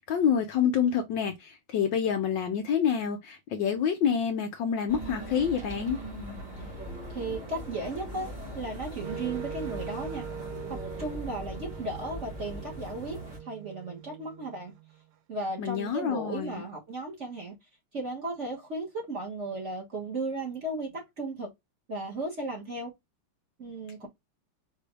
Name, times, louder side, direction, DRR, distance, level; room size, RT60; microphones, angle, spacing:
voice 1, 0.1-6.0 15.6-16.6, left 7 dB, 70° left, 1.2 m, -27 dB
sound 1, 4.9-13.4, equal, 25° right, 1.5 m, -40 dB
voice 2, 7.1-8.3 8.5-10.3 10.7-14.7 15.3-17.5 17.9-21.5 21.9-22.9 23.6-24.1, right 2 dB, 40° right, 1.4 m, -35 dB
Wind instrument woodwind instrument, 9.0-15.0, right 8 dB, 90° right, 0.9 m, -42 dB
5.0 x 2.7 x 3.3 m
omnidirectional pair, 2.4 m